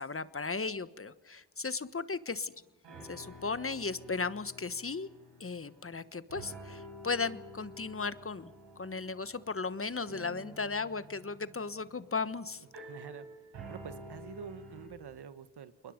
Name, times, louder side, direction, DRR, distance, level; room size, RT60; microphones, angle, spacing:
voice 1, 0.0-2.5 3.1-5.1 5.4-12.6, left 4 dB, 30° left, 14 dB, 1.3 m, -36 dB
sound 1, 2.5-2.6 2.8-6.0 6.3-14.9, right 1 dB, 90° right, 7.3 m, -50 dB
voice 2, 12.9-13.3 13.7-15.9, right 7 dB, 70° right, 12 dB, 1.5 m, -47 dB
30.0 x 21.5 x 5.3 m, 1.1 s
cardioid pair, 50°, 41 cm